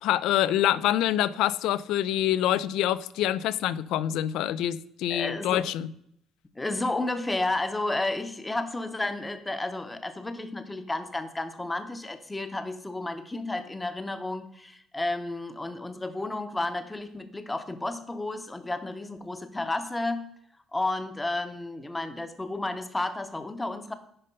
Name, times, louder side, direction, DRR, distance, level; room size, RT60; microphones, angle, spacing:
voice 1, 0.0-5.9, left 12 dB, 80° left, 0.4 m, -26 dB
voice 2, 5.1-5.7 6.6-20.2 20.7-23.9, left 2 dB, 10° left, 0.7 m, -32 dB
9.8 x 5.4 x 5.2 m
cardioid pair, 170°, 0 cm